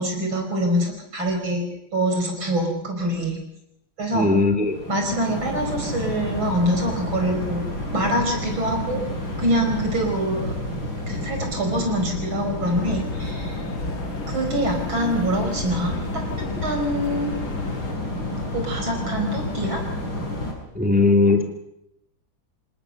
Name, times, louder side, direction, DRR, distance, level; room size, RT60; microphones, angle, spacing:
voice 1, 0.0-1.7 1.9-3.4 4.0-4.3 4.9-7.6 7.9-9.0 9.4-10.5 11.1-13.6 14.3-16.2 16.6-17.4 18.5-19.8, right 1 dB, 80° right, 3 dB, 6.1 m, -25 dB
voice 2, 4.1-4.7 20.7-21.4, left 3 dB, 5° right, 3 dB, 2.4 m, -18 dB
sound 1, 4.6-20.5, left 1 dB, 70° left, 6.8 m, -30 dB
sound 2, 12.6-17.9, left 3 dB, 40° left, 2.5 m, -35 dB
28.0 x 19.0 x 6.7 m, 0.81 s
omnidirectional pair, 2.1 m